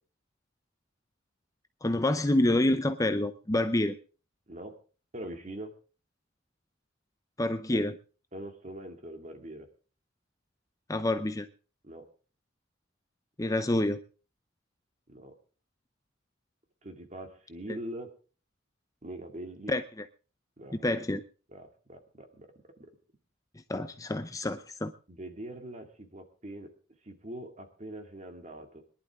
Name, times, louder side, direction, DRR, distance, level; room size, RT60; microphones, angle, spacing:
voice 1, 1.8-4.0 7.4-7.9 10.9-11.5 13.4-14.0 19.7-19.8 20.8-21.2 23.7-24.9, left 1 dB, 15° left, 9 dB, 0.6 m, -27 dB
voice 2, 5.1-5.7 7.7-7.8 8.3-9.7 11.8-12.1 15.1-15.3 16.8-18.1 19.0-19.7 20.6-20.8 21.5-22.5 25.1-26.7 27.0-28.8, right 1 dB, 35° right, 5 dB, 2.3 m, -42 dB
22.0 x 11.5 x 3.6 m, 0.37 s
head